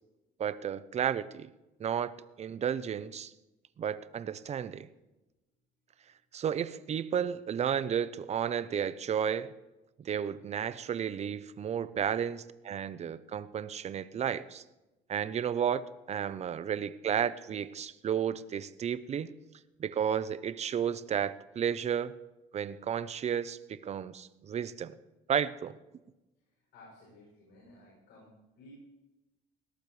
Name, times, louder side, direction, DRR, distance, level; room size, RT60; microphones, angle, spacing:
voice 1, 0.4-1.5 1.8-3.3 3.8-4.9 6.3-9.5 10.0-14.6 15.1-19.3 19.8-22.1 22.5-25.0 25.3-25.8, right 8 dB, 40° right, 15 dB, 0.7 m, -32 dB
voice 2, 26.7-28.3 28.6-28.7, left 2 dB, 85° left, -3 dB, 7.1 m, -56 dB
20.5 x 18.0 x 3.3 m, 1.0 s
cardioid pair, 110°, 17 cm